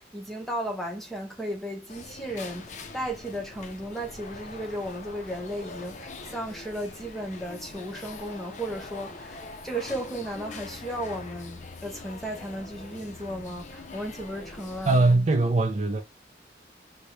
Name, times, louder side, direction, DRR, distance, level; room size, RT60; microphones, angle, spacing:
voice 1, 0.0-15.0, right 1 dB, ahead, 0.9 m, -35 dB
sound 1, 1.9-15.2, left 3 dB, 40° left, 0.5 m, -43 dB
voice 2, 14.9-16.0, right 2 dB, 40° right, 0.4 m, -21 dB
4.4 x 2.2 x 3.2 m
head